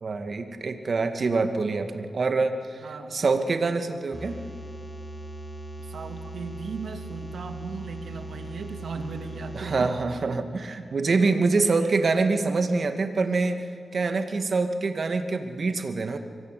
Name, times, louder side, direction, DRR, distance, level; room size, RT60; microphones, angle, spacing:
voice 1, 0.0-4.4 9.5-13.6 13.9-16.2, right 3 dB, 55° right, 7 dB, 2.3 m, -25 dB
voice 2, 2.8-3.2 5.8-9.9 10.3-10.4 11.7-11.9, right 4 dB, 80° right, 6 dB, 2.4 m, -37 dB
sound 1, 4.1-9.9, right 1 dB, 15° left, 6.9 m, -39 dB
24.5 x 22.0 x 9.4 m, 2.5 s
cardioid pair, 75°, 0 cm